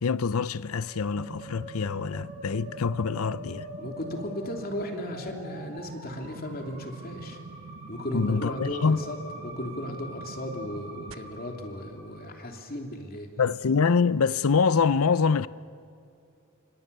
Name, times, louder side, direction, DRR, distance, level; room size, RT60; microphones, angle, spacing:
voice 1, 0.0-3.7 8.1-9.0 13.4-15.5, left 5 dB, 90° left, 0.6 m, -25 dB
Musical instrument, 0.8-12.6, equal, 35° right, 5.5 m, -45 dB
sound 1, 1.1-11.1, right 4 dB, 70° right, 0.9 m, -45 dB
voice 2, 3.8-7.4 7.9-9.2 9.4-13.3, left 1 dB, 45° left, 2.9 m, -35 dB
28.0 x 25.0 x 6.8 m
head